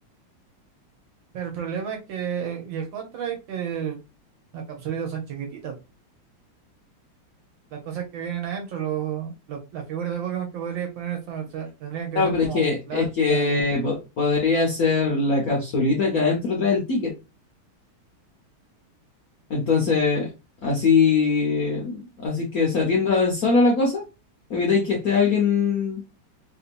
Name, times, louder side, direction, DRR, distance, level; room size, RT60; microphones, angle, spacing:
voice 1, 1.3-4.0 4.5-5.8 7.7-13.7, right 8 dB, 70° right, 2 dB, 1.6 m, -31 dB
voice 2, 12.1-17.1 19.5-20.3 20.6-24.0 24.5-26.0, left 4 dB, 55° left, -2 dB, 1.2 m, -22 dB
3.5 x 2.8 x 2.4 m, 0.26 s
omnidirectional pair, 2.2 m